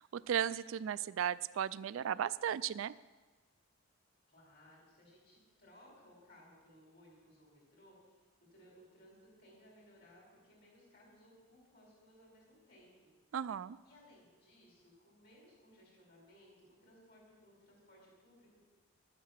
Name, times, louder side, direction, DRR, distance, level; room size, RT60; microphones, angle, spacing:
voice 1, 0.0-2.9 13.3-13.8, right 9 dB, 65° right, 17 dB, 0.3 m, -35 dB
voice 2, 4.3-8.2 8.5-13.1 13.8-18.6, equal, 50° left, -1 dB, 5.1 m, -62 dB
11.5 x 9.4 x 7.4 m, 1.3 s
head